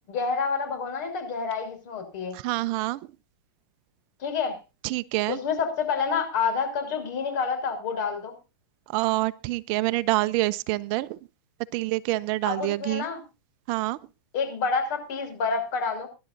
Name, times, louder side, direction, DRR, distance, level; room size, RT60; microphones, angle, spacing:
voice 1, 0.1-2.4 4.2-4.6 5.3-8.4 12.4-13.2 14.3-16.1, left 5 dB, 55° left, 6 dB, 6.2 m, -28 dB
voice 2, 2.3-3.0 4.8-5.4 8.9-11.2 11.7-13.0 13.7-14.0, right 19 dB, 45° right, 15 dB, 0.6 m, -26 dB
24.5 x 11.5 x 2.7 m, 0.29 s
hypercardioid pair, 130°, 12 cm